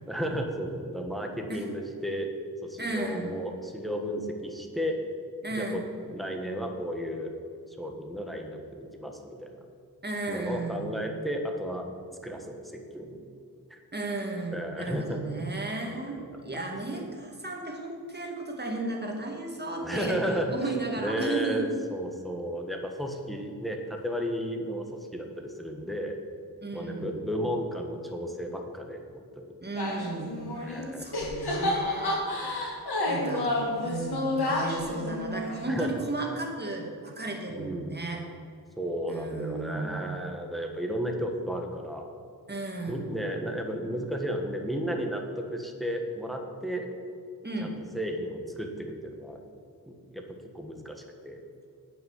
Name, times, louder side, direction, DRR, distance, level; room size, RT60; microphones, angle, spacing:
voice 1, 0.1-2.3 2.6-5.0 5.6-5.8 6.1-7.3 7.7-9.6 10.3-11.9 12.2-12.6 12.9-13.2 13.7-13.8 14.5-15.2 16.0-16.6 16.9-17.0 19.8-20.6 21.0-26.2 26.7-29.5 30.6-31.1 35.6-35.9 37.5-37.9 38.8-42.0 42.9-46.9 47.6-49.4 49.9-51.4, equal, ahead, 3 dB, 1.4 m, -33 dB
voice 2, 2.8-3.3 5.4-5.9 10.0-10.9 13.9-20.2 20.5-21.7 26.6-27.1 29.6-30.4 31.0-32.2 33.1-33.5 33.8-38.2 39.1-40.1 42.5-43.1 47.4-47.7, right 2 dB, 25° right, 1 dB, 2.0 m, -34 dB
sound 1, 29.7-30.9 31.1-35.8, left 2 dB, 75° left, 2.4 m, -30 dB
9.2 x 5.9 x 8.0 m, 2.3 s
wide cardioid pair, 65°, 39 cm